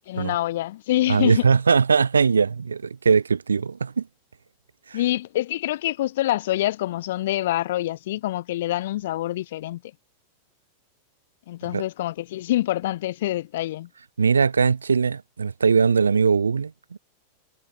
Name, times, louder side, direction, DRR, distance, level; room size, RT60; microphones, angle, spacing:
voice 1, 0.1-1.5 4.9-9.8 11.5-13.9, left 14 dB, 55° left, 0.9 m, -26 dB
voice 2, 1.1-4.1 4.9-5.0 11.7-11.8 14.2-17.0, right 5 dB, 75° right, 1.1 m, -20 dB
figure-of-eight pair, 90°, 0 cm